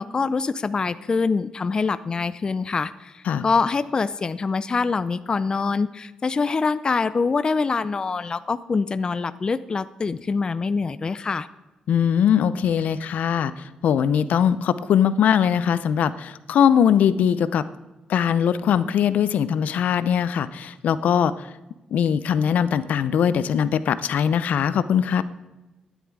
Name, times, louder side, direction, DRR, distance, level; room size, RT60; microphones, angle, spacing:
voice 1, 0.0-11.5, left 4 dB, 35° left, 14 dB, 0.5 m, -25 dB
voice 2, 11.9-17.6 18.1-21.5 21.9-25.2, left 8 dB, 80° left, 15 dB, 0.6 m, -21 dB
13.0 x 10.0 x 4.8 m, 1.1 s
cardioid pair, 110°, 3 cm